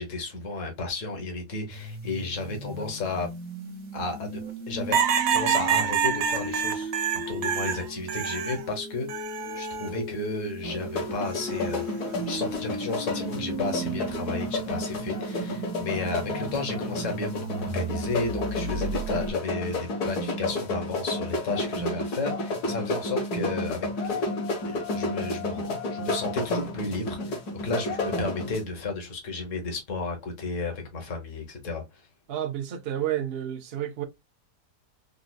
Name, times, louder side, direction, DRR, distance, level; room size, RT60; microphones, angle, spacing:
voice 1, 0.0-3.3 3.9-4.4 4.7-5.0 5.3-6.9 7.3-9.1 9.5-24.3 24.6-25.6 25.9-32.1, left 3 dB, 55° left, 1.5 m, -33 dB
sound 1, 1.7-19.3, right 1 dB, 45° right, 1.1 m, -36 dB
sound 2, 4.9-8.6 9.1-9.9 11.3-11.7, right 7 dB, 85° right, 1.4 m, -27 dB
sound 3, 10.6-28.6, left 2 dB, 70° left, 1.8 m, -31 dB
voice 2, 32.3-34.0, right 11 dB, 70° right, 0.5 m, -30 dB
4.0 x 2.6 x 2.2 m
omnidirectional pair, 1.7 m